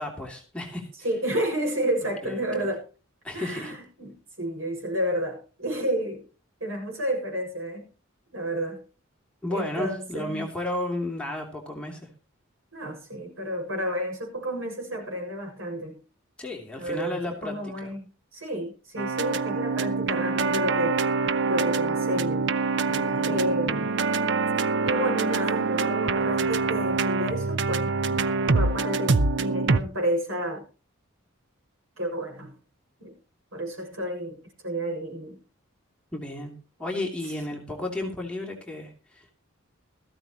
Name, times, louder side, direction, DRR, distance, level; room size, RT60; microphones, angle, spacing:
voice 1, 0.0-0.9 2.2-2.7 3.2-3.7 9.4-12.1 16.4-17.9 22.9-23.4 36.1-36.5 36.8-39.3, left 1 dB, 5° left, 0 dB, 3.0 m, -33 dB
voice 2, 1.0-2.9 3.3-6.2 6.6-7.9 8.3-8.8 9.5-10.5 12.7-16.0 16.8-18.1 18.3-21.0 21.4-22.5 23.2-24.0 24.9-30.6 32.0-32.6 33.0-33.2 33.5-35.4 37.1-37.2, right 1 dB, 85° right, 2 dB, 6.9 m, -31 dB
sound 1, 19.0-29.8, right 4 dB, 60° right, 0.7 m, -25 dB
17.5 x 14.5 x 3.0 m, 0.34 s
head